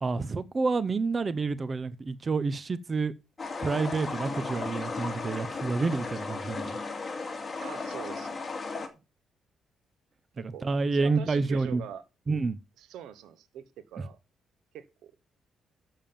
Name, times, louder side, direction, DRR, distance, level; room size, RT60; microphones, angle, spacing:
voice 1, 0.0-3.1 3.6-6.8 10.4-11.8 12.3-12.6, right 4 dB, 35° right, 0.7 m, -29 dB
sound 1, 3.4-8.9, left 4 dB, 30° left, 2.5 m, -35 dB
voice 2, 7.6-8.4 10.4-12.0 12.8-14.2 14.7-15.1, right 10 dB, 85° right, 1.2 m, -44 dB
7.4 x 7.2 x 6.9 m
cardioid pair, 90°, 0 cm